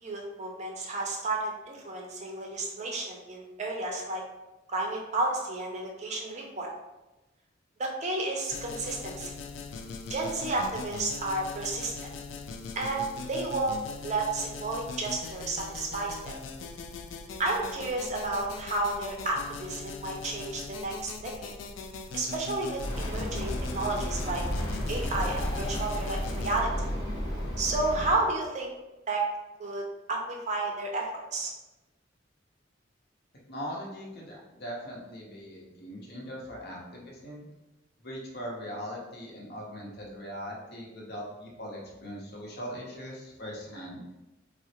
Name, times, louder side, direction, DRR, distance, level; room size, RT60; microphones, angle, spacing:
voice 1, 0.0-4.2 4.7-6.7 7.8-9.3 10.1-12.1 12.7-13.8 14.0-16.3 17.4-21.6 22.1-24.4 24.9-26.7 27.6-28.7 29.1-29.2 29.6-29.8 30.1-31.5, right 2 dB, 35° right, 0 dB, 0.5 m, -32 dB
sound 1, 8.5-26.6, left 4 dB, 75° left, 0.3 m, -41 dB
Bird, 22.8-28.2, equal, 20° left, 0.7 m, -32 dB
voice 2, 33.5-37.4 38.0-44.0, equal, 55° left, -2 dB, 0.8 m, -40 dB
3.6 x 2.1 x 2.8 m, 1.0 s
head